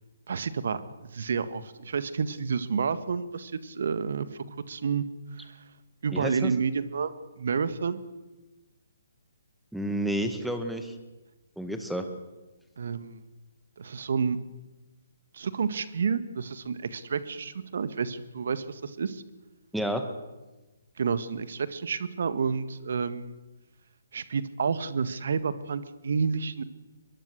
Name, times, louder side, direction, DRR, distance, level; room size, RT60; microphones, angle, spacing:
voice 1, 0.3-5.0 5.4-5.6 6.0-8.0 12.8-13.2 13.8-14.4 15.3-19.2 21.0-23.4 24.1-26.6, right 5 dB, 60° right, 13 dB, 1.7 m, -30 dB
voice 2, 6.1-6.5 9.7-11.0 11.6-12.1 19.7-20.0, right 1 dB, ahead, 6 dB, 1.9 m, -30 dB
23.5 x 22.0 x 6.6 m, 1.1 s
figure-of-eight pair, 135°, 0 cm